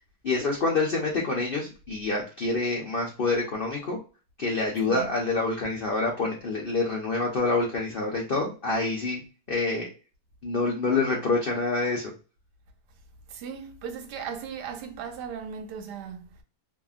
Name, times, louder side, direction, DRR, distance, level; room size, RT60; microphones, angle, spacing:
voice 1, 0.2-4.0 4.4-9.2 9.5-9.9 10.4-12.1, left 3 dB, 70° left, 0.5 m, -27 dB
voice 2, 13.3-16.4, right 7 dB, 80° right, 1.2 m, -37 dB
2.8 x 2.6 x 2.3 m
omnidirectional pair, 1.8 m